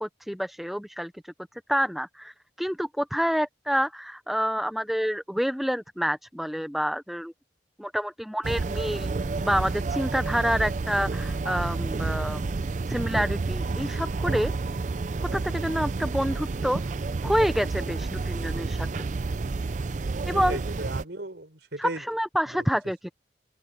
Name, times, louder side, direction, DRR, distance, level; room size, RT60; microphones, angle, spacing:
voice 1, 0.0-1.1 1.7-2.3 2.6-7.3 7.8-9.1 9.4-12.4 12.9-14.5 15.3-16.8 17.2-19.0 20.2-20.6 21.8-23.1, equal, ahead, 0.6 m, -28 dB
sound 1, 8.4-21.0, right 3 dB, 40° right, 0.5 m, -30 dB
voice 2, 20.3-22.0 22.6-22.7, right 2 dB, 70° right, 4.4 m, -36 dB
open air
head